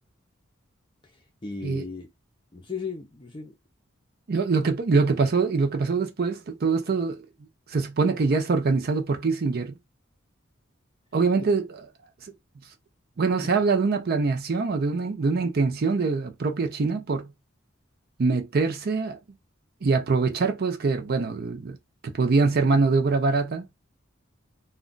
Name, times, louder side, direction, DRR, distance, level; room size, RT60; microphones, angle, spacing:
voice 1, 1.0-2.1 2.5-3.5 13.4-13.5, left 4 dB, 25° left, 0.5 m, -36 dB
voice 2, 4.3-7.3 7.7-9.7 11.1-11.6 13.2-17.3 18.2-19.2 19.8-21.8 22.0-23.7, right 4 dB, 50° right, 0.5 m, -24 dB
2.3 x 2.2 x 3.8 m
head